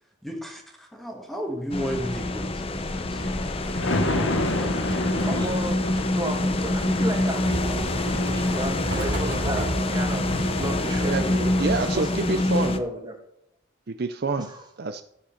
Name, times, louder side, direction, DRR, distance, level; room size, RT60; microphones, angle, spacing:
voice 1, 0.2-3.3 4.5-4.7, equal, ahead, 2 dB, 1.4 m, -33 dB
sound 1, 1.7-12.8, left 2 dB, 30° left, 0.7 m, -26 dB
sound 2, 1.8-11.9, right 1 dB, 70° right, 2.6 m, -34 dB
Thunder, 3.0-11.3 11.7-11.8, left 1 dB, 80° left, 1.4 m, -31 dB
voice 2, 5.2-9.7 9.9-11.6 11.9-13.2 14.4-14.6, right 1 dB, 20° right, 1 dB, 2.1 m, -33 dB
voice 3, 11.6-12.8 13.9-14.5 14.8-15.0, right 3 dB, 50° right, 9 dB, 0.5 m, -27 dB
13.5 x 6.3 x 5.7 m, 0.77 s
head